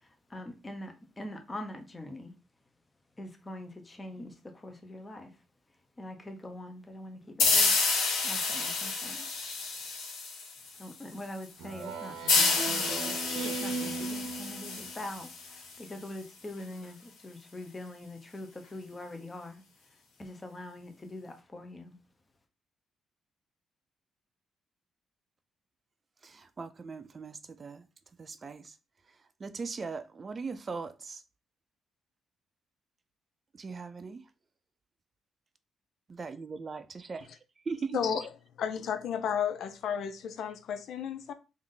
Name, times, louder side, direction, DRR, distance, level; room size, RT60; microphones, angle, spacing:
voice 1, 0.3-2.3 3.2-5.3 6.0-7.7 8.2-9.3 10.8-19.6 20.2-22.0, left 1 dB, 20° left, 0.8 m, -43 dB
sound 1, 7.4-10.8 12.3-15.8, left 4 dB, 85° left, 1.2 m, -29 dB
Speech synthesizer, 11.6-15.1, right 4 dB, 85° right, 0.8 m, -38 dB
voice 2, 26.2-27.8 28.2-28.7 29.4-31.2 33.5-34.2 36.1-37.3 37.7-38.0, right 4 dB, 35° right, 0.5 m, -39 dB
voice 3, 37.9-41.3, left 8 dB, 70° left, 0.4 m, -33 dB
3.5 x 2.6 x 3.8 m
cardioid pair, 90°, 0 cm